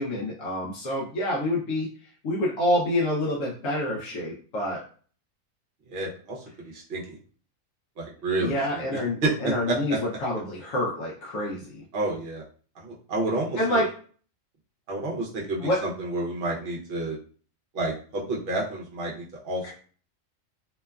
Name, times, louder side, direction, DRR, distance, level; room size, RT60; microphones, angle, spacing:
voice 1, 0.0-4.8 8.4-11.8 13.6-13.9 15.6-15.8 19.6-19.7, left 1 dB, 75° left, -4 dB, 1.0 m, -27 dB
voice 2, 5.9-7.2 8.0-8.8 9.2-10.0 11.9-12.4 12.8-13.8 14.9-17.2 17.7-19.7, right 2 dB, 55° right, -3 dB, 0.8 m, -30 dB
2.9 x 2.2 x 2.2 m, 0.42 s
omnidirectional pair, 1.4 m